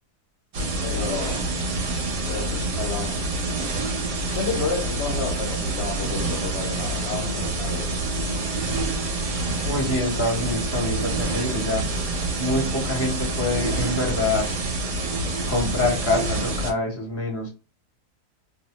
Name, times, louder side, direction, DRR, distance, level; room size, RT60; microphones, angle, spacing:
sound 1, 0.5-16.7, right 2 dB, 60° right, 0.9 m, -27 dB
voice 1, 0.8-1.7 2.3-3.8 4.3-8.0, left 5 dB, 70° left, 0.6 m, -32 dB
voice 2, 9.6-11.8 12.4-14.5 15.5-17.5, left 2 dB, 15° left, 0.4 m, -26 dB
2.6 x 2.0 x 3.0 m
omnidirectional pair, 1.7 m